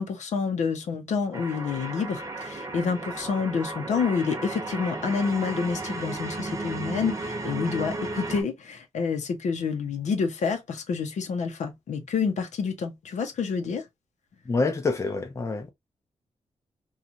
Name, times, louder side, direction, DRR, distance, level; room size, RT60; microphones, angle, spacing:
voice 1, 0.0-13.8, left 5 dB, 85° left, 0.7 m, -28 dB
sound 1, 1.3-8.4, right 2 dB, 30° right, 0.7 m, -34 dB
voice 2, 14.5-15.7, left 3 dB, 25° left, 0.6 m, -27 dB
3.0 x 2.4 x 2.5 m
wide cardioid pair, 175°, 12 cm